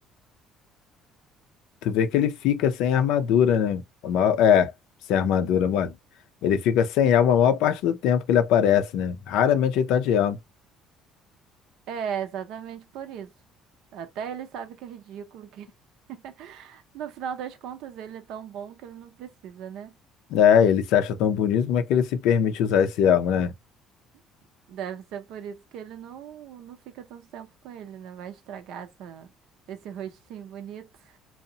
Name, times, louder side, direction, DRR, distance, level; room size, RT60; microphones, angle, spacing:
voice 1, 1.8-4.7 5.1-5.9 6.4-10.4 20.3-23.5, left 8 dB, 80° left, 0.4 m, -21 dB
voice 2, 11.9-13.3 13.9-15.7 16.1-19.9 24.7-29.3 29.7-31.2, right 8 dB, 75° right, 0.6 m, -38 dB
2.7 x 2.0 x 2.6 m
cardioid pair, 100°, 0 cm